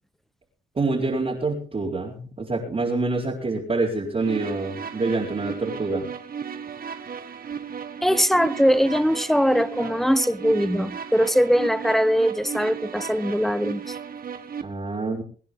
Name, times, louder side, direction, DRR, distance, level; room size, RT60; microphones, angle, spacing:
voice 1, 0.7-6.1 14.6-15.2, right 3 dB, 30° right, 4.4 m, -26 dB
sound 1, 4.2-14.6, right 7 dB, 45° right, 1.7 m, -35 dB
voice 2, 8.0-13.9, equal, ahead, 1.1 m, -21 dB
24.5 x 10.0 x 3.8 m
cardioid pair, 90°, 20 cm